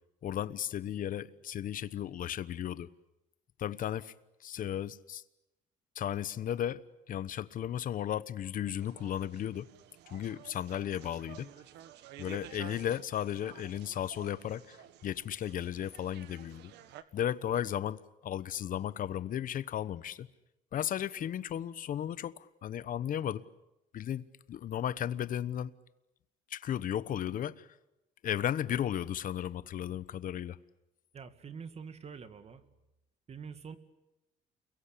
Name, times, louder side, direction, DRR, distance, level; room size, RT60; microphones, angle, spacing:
voice 1, 0.2-2.9 3.6-4.1 4.4-5.2 5.9-9.7 10.1-11.5 12.2-16.7 17.1-20.3 20.7-23.4 23.9-25.7 26.5-27.8 28.2-30.6, left 10 dB, 55° left, 1.1 m, -35 dB
sound 1, 8.8-17.0, right 11 dB, 85° right, 1.8 m, -52 dB
voice 2, 31.1-32.6 33.3-33.8, right 6 dB, 40° right, 2.3 m, -45 dB
29.5 x 22.5 x 8.6 m
cardioid pair, 110°, 17 cm